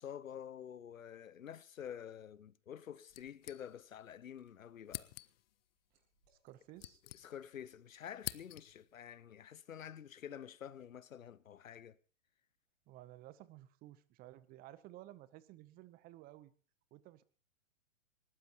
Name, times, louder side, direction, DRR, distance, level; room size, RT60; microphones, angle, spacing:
voice 1, 0.0-5.1 7.1-12.0, left 9 dB, 85° left, 0.8 m, -49 dB
sound 1, 3.1-4.1 4.4-4.5 4.9-5.6 6.4-7.7 7.9-8.9, left 15 dB, 50° left, 0.7 m, -48 dB
Liquid, 4.1-4.5 4.9-7.0 7.4-7.6 8.2-8.5, right 4 dB, 55° right, 7.3 m, -82 dB
voice 2, 6.3-7.0 12.9-16.5 16.9-17.2, right 15 dB, 25° right, 0.7 m, -55 dB
20.0 x 18.0 x 2.9 m
hypercardioid pair, 120°, 39 cm